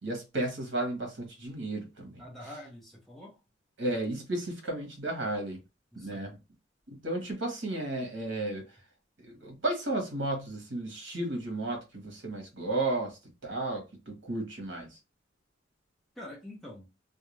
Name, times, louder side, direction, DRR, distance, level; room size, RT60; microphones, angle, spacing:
voice 1, 0.0-2.2 3.8-5.6 6.0-6.4 6.9-8.6 9.2-14.9, right 2 dB, 70° right, 1.0 m, -33 dB
voice 2, 2.2-3.4 5.9-6.3 16.2-16.9, left 1 dB, ahead, 0.7 m, -46 dB
2.4 x 2.2 x 3.0 m
head